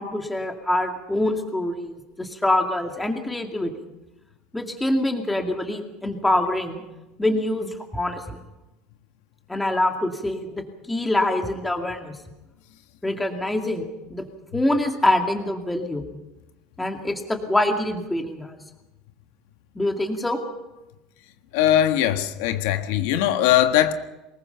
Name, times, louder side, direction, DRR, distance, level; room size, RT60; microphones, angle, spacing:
voice 1, 0.0-3.7 4.5-6.8 7.2-8.4 9.5-12.2 13.0-14.2 14.5-16.1 16.8-18.6 19.8-20.4, left 1 dB, 5° left, 2.3 m, -25 dB
voice 2, 21.5-23.9, left 12 dB, 80° left, 1.6 m, -20 dB
23.5 x 21.0 x 5.8 m
cardioid pair, 155°, 0 cm